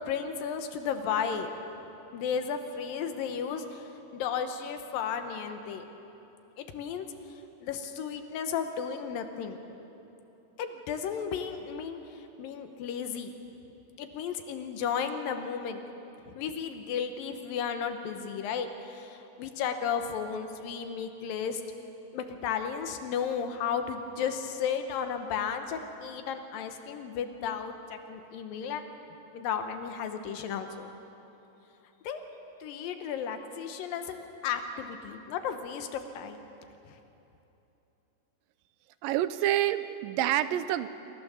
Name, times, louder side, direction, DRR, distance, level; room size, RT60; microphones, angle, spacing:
voice 1, 0.1-1.5 2.1-3.8 4.1-5.8 6.6-7.1 7.6-9.6 10.6-12.0 12.4-13.3 14.0-15.8 16.3-21.6 22.1-28.8 29.3-30.9 32.0-32.2 32.6-36.4, left 7 dB, 90° left, 7 dB, 2.8 m, -34 dB
voice 2, 39.0-40.9, right 13 dB, 85° right, 12 dB, 2.4 m, -27 dB
27.5 x 15.0 x 7.1 m, 3.0 s
omnidirectional pair, 4.0 m